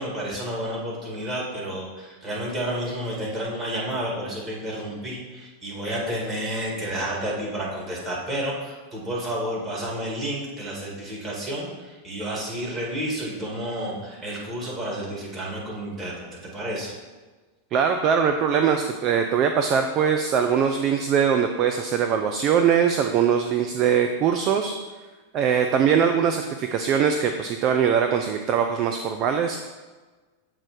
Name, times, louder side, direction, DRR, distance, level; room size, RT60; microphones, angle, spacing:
voice 1, 0.0-17.0, right 1 dB, 15° right, -4 dB, 2.0 m, -31 dB
voice 2, 17.7-24.8 25.3-29.6, right 7 dB, 35° right, 5 dB, 0.4 m, -22 dB
7.3 x 3.1 x 5.1 m, 1.3 s
figure-of-eight pair, 90°, 0 cm